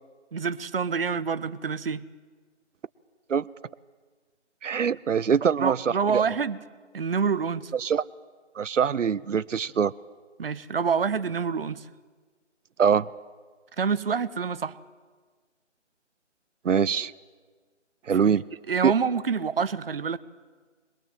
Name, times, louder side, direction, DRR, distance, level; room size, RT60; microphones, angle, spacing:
voice 1, 0.3-2.0 4.9-5.0 5.6-6.6 6.9-7.7 10.4-11.9 13.8-14.7 18.7-20.2, right 6 dB, 50° right, 0.7 m, -27 dB
voice 2, 4.6-6.2 7.7-8.0 8.6-9.9 12.8-13.1 16.6-17.1 18.1-18.4 18.8-18.9, right 7 dB, 90° right, 0.6 m, -23 dB
22.0 x 20.5 x 7.7 m
figure-of-eight pair, 160°, 36 cm